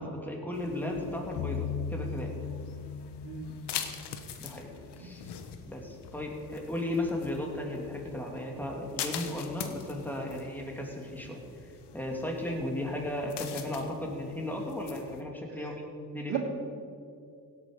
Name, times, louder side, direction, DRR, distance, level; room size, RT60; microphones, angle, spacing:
voice 1, 0.0-2.4 4.4-5.3 5.7-16.4, left 1 dB, 5° left, 0 dB, 2.6 m, -35 dB
sound 1, 0.5-15.2, left 8 dB, 80° left, 1.2 m, -44 dB
sound 2, 1.4-4.5, left 6 dB, 50° left, 0.8 m, -37 dB
voice 2, 3.2-3.5 5.0-5.1 15.5-15.8 16.3-16.4, right 10 dB, 80° right, 1 dB, 2.4 m, -36 dB
17.0 x 8.3 x 5.4 m, 2.4 s
cardioid pair, 90°, 40 cm